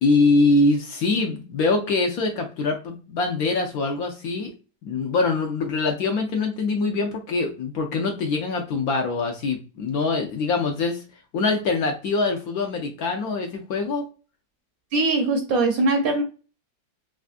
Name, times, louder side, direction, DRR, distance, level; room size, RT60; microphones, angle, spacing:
voice 1, 0.0-4.5 4.8-11.0 11.3-14.0, left 3 dB, 70° left, 0.9 m, -23 dB
voice 2, 14.9-16.2, right 2 dB, 70° right, 0.9 m, -21 dB
3.2 x 2.4 x 2.5 m
omnidirectional pair, 1.8 m